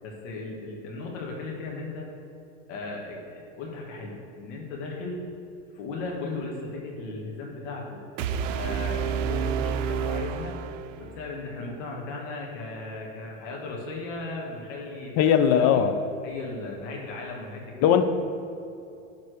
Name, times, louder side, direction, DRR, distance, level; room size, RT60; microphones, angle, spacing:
voice 1, 0.0-2.1 2.7-5.2 5.7-8.0 8.4-10.6 11.0-15.9 16.2-18.0, left 3 dB, 60° left, -2 dB, 2.1 m, -36 dB
sound 1, 8.2-11.2, right 7 dB, 70° right, 0.6 m, -29 dB
voice 2, 15.2-16.0 17.8-18.0, left 8 dB, 40° left, 9 dB, 0.8 m, -19 dB
11.5 x 4.2 x 6.5 m, 2.7 s
hypercardioid pair, 115°, 40 cm